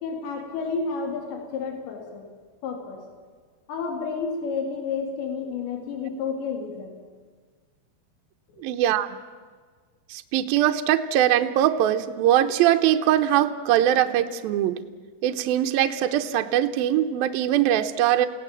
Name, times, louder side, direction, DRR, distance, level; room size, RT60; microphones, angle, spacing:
voice 1, 0.0-2.3 2.6-3.0 3.7-7.0, left 5 dB, 80° left, 2 dB, 4.7 m, -30 dB
voice 2, 8.6-9.2 10.1-14.8 15.2-18.3, right 11 dB, 80° right, 6 dB, 2.2 m, -22 dB
28.0 x 17.0 x 7.4 m, 1.5 s
omnidirectional pair, 5.1 m